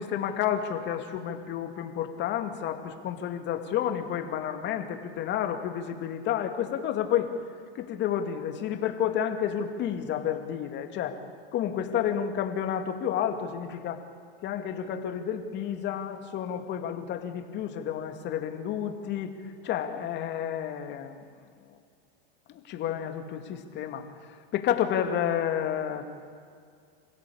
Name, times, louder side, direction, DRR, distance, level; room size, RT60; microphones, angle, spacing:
voice 1, 0.0-7.3 7.7-11.2 11.5-14.0 14.4-19.4 19.6-21.3 22.5-24.0 24.5-26.1, left 9 dB, 35° left, 6 dB, 2.4 m, -30 dB
27.0 x 16.0 x 8.7 m, 2.3 s
supercardioid pair, 130°, 30 cm